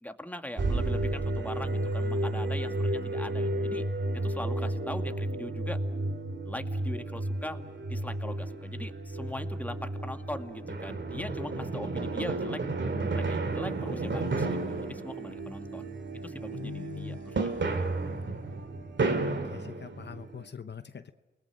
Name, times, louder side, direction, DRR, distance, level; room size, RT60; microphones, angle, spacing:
voice 1, 0.0-3.8 4.1-5.8 6.4-7.6 7.9-12.7 13.1-15.9 16.2-17.9, left 1 dB, 10° left, 6 dB, 2.2 m, -41 dB
sound 1, 0.6-20.5, right 2 dB, 70° right, 2.5 m, -32 dB
voice 2, 16.5-17.4 17.7-18.2 19.2-21.1, left 6 dB, 65° left, 10 dB, 0.9 m, -43 dB
29.5 x 20.0 x 7.5 m, 1.2 s
cardioid pair, 50°, 20 cm